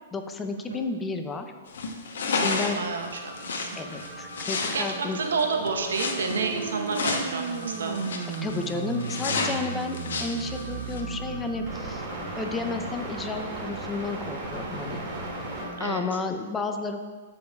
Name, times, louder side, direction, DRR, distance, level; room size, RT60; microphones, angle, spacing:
voice 1, 0.1-1.5 2.3-2.8 3.8-5.2 8.4-12.1 12.4-15.0 15.8-17.0, left 3 dB, 15° left, 6 dB, 0.5 m, -32 dB
sound 1, 1.7-11.0, left 4 dB, 80° left, 0.9 m, -32 dB
voice 2, 2.3-3.7 4.7-8.0 15.8-16.2, right 4 dB, 85° right, 3 dB, 0.9 m, -30 dB
sound 2, 2.6-15.8, right 1 dB, 35° right, 2.1 m, -39 dB
sound 3, 4.9-12.0, right 6 dB, 65° right, 0.5 m, -36 dB
12.5 x 5.3 x 2.3 m, 1.5 s
hypercardioid pair, 135°, 0 cm